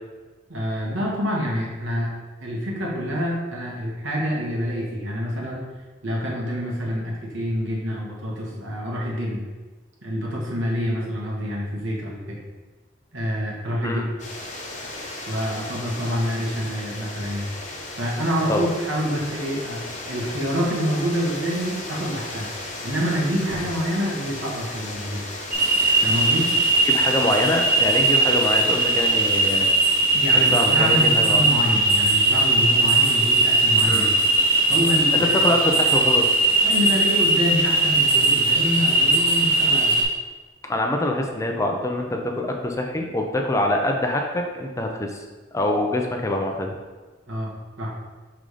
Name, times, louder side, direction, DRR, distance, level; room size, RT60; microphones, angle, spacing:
voice 1, 0.5-2.1 2.4-5.7 6.0-9.4 10.0-12.4 13.1-14.0 15.3-17.5 18.0-19.8 20.1-25.3 26.0-26.5 30.1-34.0 34.7-35.3 36.6-40.0 47.3-47.9, equal, 80° right, -3 dB, 1.6 m, -27 dB
sound 1, 14.2-29.6, left 2 dB, 40° left, 0.9 m, -36 dB
sound 2, 25.5-40.0, right 2 dB, 50° right, 1.3 m, -19 dB
voice 2, 26.9-29.7 30.3-31.5 33.9-34.2 35.1-36.3 40.6-45.2 45.5-46.7, left 1 dB, 15° left, 2 dB, 0.5 m, -24 dB
5.4 x 3.8 x 4.9 m, 1.3 s
head